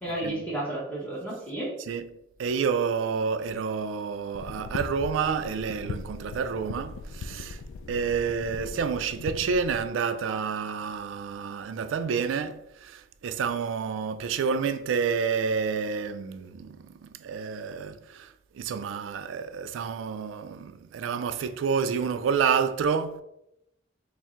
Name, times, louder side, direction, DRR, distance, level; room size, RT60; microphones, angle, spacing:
voice 1, 0.0-1.7, right 1 dB, 10° left, 0.8 m, -32 dB
voice 2, 2.4-7.6 7.9-23.2, right 6 dB, 80° right, 0.3 m, -29 dB
sound 1, 4.3-9.8, left 4 dB, 85° left, 0.3 m, -39 dB
4.3 x 2.1 x 3.6 m
head